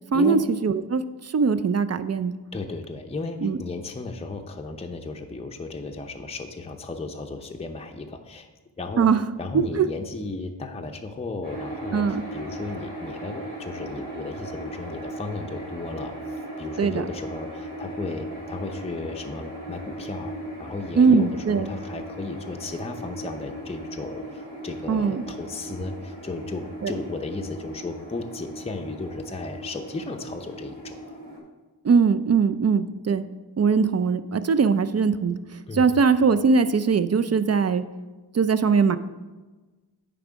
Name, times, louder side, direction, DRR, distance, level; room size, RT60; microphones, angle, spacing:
voice 1, 0.1-2.3 3.4-3.6 9.0-9.2 9.5-9.9 11.9-12.2 16.8-17.0 21.0-21.7 24.9-25.2 26.8-26.9 31.8-33.3 33.6-35.4 35.7-37.8 38.3-39.0, right 5 dB, 40° right, 12 dB, 0.4 m, -21 dB
voice 2, 2.5-8.5 8.8-9.1 9.4-31.2 35.7-35.9, left 3 dB, 15° left, 4 dB, 0.5 m, -35 dB
sound 1, 11.4-31.4, right 1 dB, 75° right, 2.2 m, -38 dB
9.2 x 3.6 x 5.0 m, 1.2 s
wide cardioid pair, 55°, 41 cm